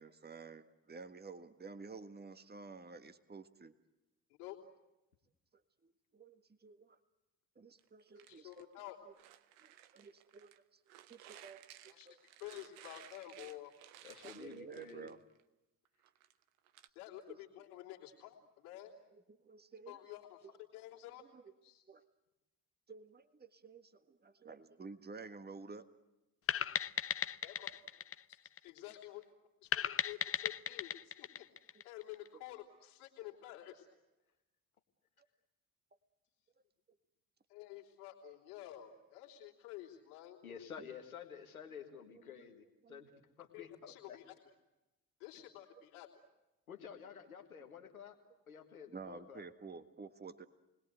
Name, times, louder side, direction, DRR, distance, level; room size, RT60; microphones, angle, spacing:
voice 1, 0.0-3.7 5.8-7.0 7.6-8.6 9.1-9.2 9.6-10.6 11.1-12.2 14.2-15.2 17.3-17.4 19.3-20.0 20.4-20.5 21.3-21.5 21.9-22.1 22.9-25.9 40.8-40.9 42.1-42.5 42.8-43.1 48.9-50.5, right 4 dB, 25° right, 9 dB, 1.6 m, -52 dB
sound 1, 7.8-10.6 10.9-15.4 15.9-16.9, right 12 dB, 75° right, 1.1 m, -58 dB
voice 2, 8.1-9.0 11.9-12.1 12.4-13.7 17.0-18.9 19.9-21.2 21.6-21.8 27.4-27.8 28.3-28.4 28.6-29.2 29.6-31.5 31.8-33.9 37.5-40.4 43.5-44.3 45.2-46.1, left 14 dB, 75° left, 0 dB, 3.3 m, -50 dB
voice 3, 14.0-15.1 40.4-43.1 43.4-44.2 45.3-45.4 46.7-48.2 48.5-49.4, left 7 dB, 90° left, 4 dB, 1.9 m, -51 dB
sound 2, 26.5-29.0 29.7-32.3, left 8 dB, 35° left, 0.9 m, -37 dB
29.5 x 20.5 x 8.1 m, 1.0 s
figure-of-eight pair, 45°, 42 cm